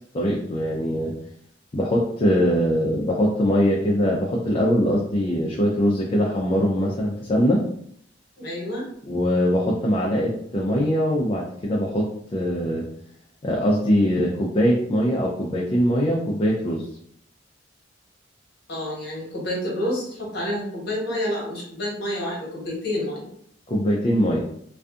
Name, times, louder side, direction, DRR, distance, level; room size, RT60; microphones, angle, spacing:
voice 1, 0.1-1.1 1.7-7.6 9.1-12.8 13.4-16.9 23.7-24.4, equal, 30° left, -3 dB, 0.4 m, -22 dB
voice 2, 8.4-8.8 18.7-23.3, left 1 dB, 65° left, -3 dB, 1.0 m, -29 dB
2.5 x 2.4 x 2.4 m, 0.68 s
head